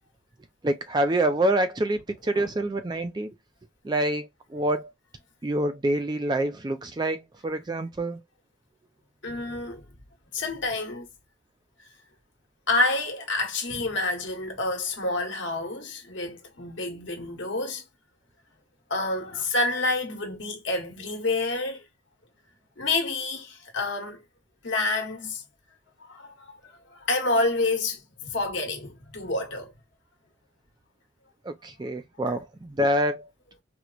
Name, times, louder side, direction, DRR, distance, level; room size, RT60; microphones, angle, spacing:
voice 1, 0.6-3.3 3.8-4.9 5.4-8.2 31.4-33.3, right 1 dB, 20° right, 0.4 m, -26 dB
voice 2, 9.2-9.8 10.3-11.1 12.7-17.8 18.9-21.8 22.8-24.2 24.6-25.4 26.0-26.6 26.9-29.7, left 2 dB, 65° left, 1.1 m, -28 dB
4.4 x 2.1 x 2.4 m
head